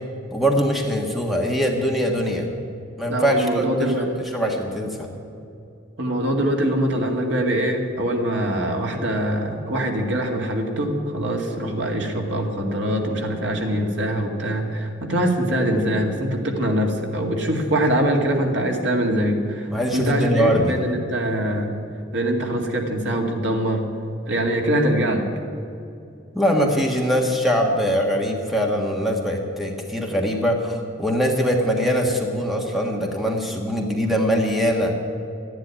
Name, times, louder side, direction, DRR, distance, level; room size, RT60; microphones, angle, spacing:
voice 1, 0.3-2.5 3.0-4.0 4.3-5.1 19.7-20.8 26.3-34.9, equal, ahead, 1 dB, 1.5 m, -22 dB
voice 2, 3.1-4.1 6.0-21.8 22.1-23.9 24.3-25.3, right 1 dB, 65° right, 2 dB, 2.2 m, -23 dB
13.0 x 10.5 x 9.9 m, 2.6 s
head